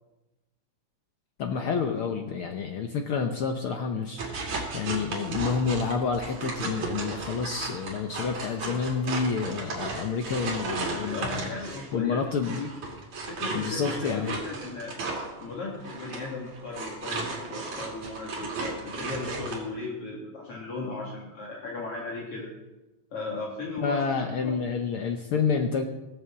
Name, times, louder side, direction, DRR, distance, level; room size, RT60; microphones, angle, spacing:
voice 1, 1.4-4.2 4.7-11.5 11.9-12.7 13.5-14.4 23.8-25.8, left 5 dB, 90° left, 4 dB, 1.2 m, -29 dB
sound 1, 4.2-11.9 12.4-19.6, right 3 dB, 60° right, 4.1 m, -35 dB
voice 2, 10.9-12.2 13.2-14.9 15.4-22.5 23.1-24.6, left 3 dB, 50° left, -3 dB, 2.8 m, -36 dB
18.5 x 8.0 x 7.2 m, 1.0 s
omnidirectional pair, 3.8 m